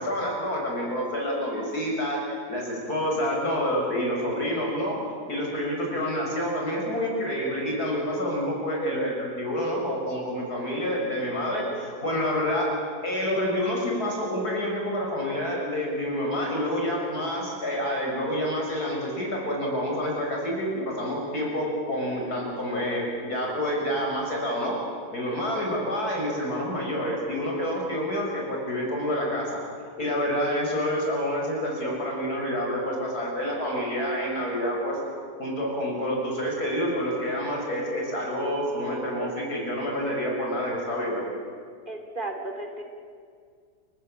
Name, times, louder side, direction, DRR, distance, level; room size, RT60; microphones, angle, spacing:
voice 1, 0.0-5.0 5.3-12.7 13.0-24.8 25.1-29.5 30.0-35.0 35.4-41.2, equal, 65° left, -1 dB, 7.1 m, -28 dB
voice 2, 41.9-42.8, right 2 dB, 30° right, 3 dB, 3.6 m, -34 dB
30.0 x 19.5 x 8.8 m, 2.1 s
omnidirectional pair, 1.8 m